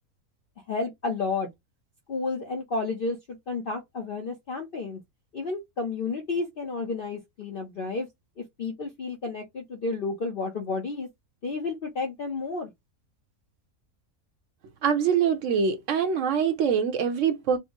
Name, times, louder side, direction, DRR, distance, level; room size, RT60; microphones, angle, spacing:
voice 1, 0.7-1.5 2.1-3.2 3.5-5.0 5.3-8.1 8.6-11.1 11.4-12.7, left 3 dB, 50° left, 0.7 m, -31 dB
voice 2, 14.8-17.6, right 7 dB, 60° right, 1.0 m, -24 dB
4.4 x 2.0 x 2.8 m
omnidirectional pair, 1.6 m